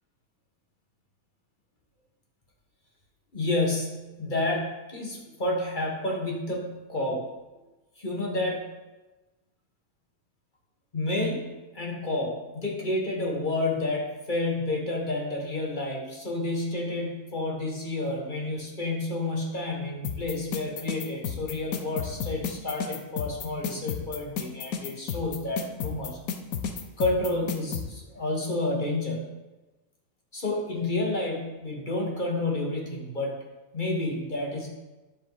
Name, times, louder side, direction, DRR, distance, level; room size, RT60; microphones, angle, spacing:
voice 1, 3.3-7.3 8.0-8.6 10.9-26.2 27.0-29.3 30.3-33.4 33.7-34.7, left 2 dB, 35° left, -1 dB, 1.6 m, -30 dB
sound 1, 20.0-27.8, left 7 dB, 80° left, 1.3 m, -32 dB
10.0 x 7.3 x 4.0 m, 1.1 s
omnidirectional pair, 1.6 m